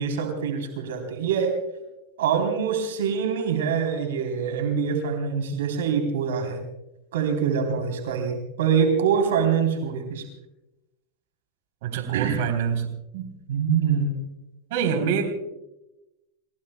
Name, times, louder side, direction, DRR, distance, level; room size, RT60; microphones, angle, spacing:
voice 1, 0.0-1.5 2.2-6.6 7.1-10.3 12.1-12.4 13.5-14.2, right 6 dB, 85° right, 4 dB, 3.4 m, -24 dB
voice 2, 11.8-12.9 13.1-13.3 14.7-15.3, right 7 dB, 70° right, 4 dB, 3.5 m, -25 dB
30.0 x 18.0 x 2.2 m, 0.95 s
supercardioid pair, 125°, 0 cm